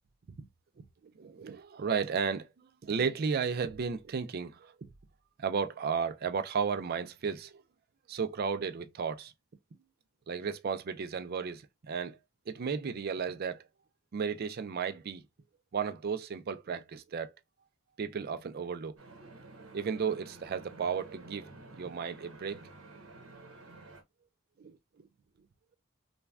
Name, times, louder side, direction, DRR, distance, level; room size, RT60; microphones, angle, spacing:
voice 1, 1.2-2.5 2.8-4.9 5.4-7.6 8.1-9.3 10.3-12.2 12.5-13.6 14.1-15.2 15.7-17.3 18.0-19.0 19.7-22.6 24.6-25.1, right 6 dB, 45° right, 0.4 m, -34 dB
sound 1, 19.0-24.0, right 2 dB, 75° right, 1.0 m, -51 dB
3.3 x 2.2 x 2.3 m
head